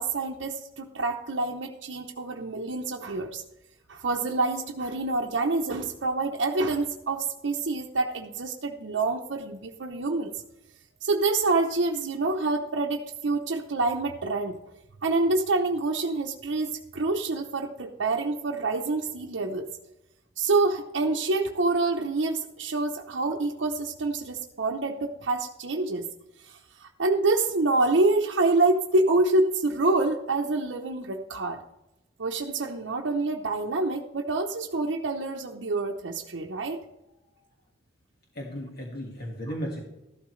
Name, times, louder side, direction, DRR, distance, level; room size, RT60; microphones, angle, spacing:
voice 1, 0.0-3.4 3.9-10.3 11.0-14.6 15.0-19.7 20.4-26.1 26.4-31.6 32.2-36.8, right 3 dB, 85° right, 0 dB, 0.8 m, -27 dB
voice 2, 38.4-39.8, equal, 55° left, -1 dB, 1.8 m, -35 dB
14.0 x 12.0 x 3.2 m, 0.92 s
head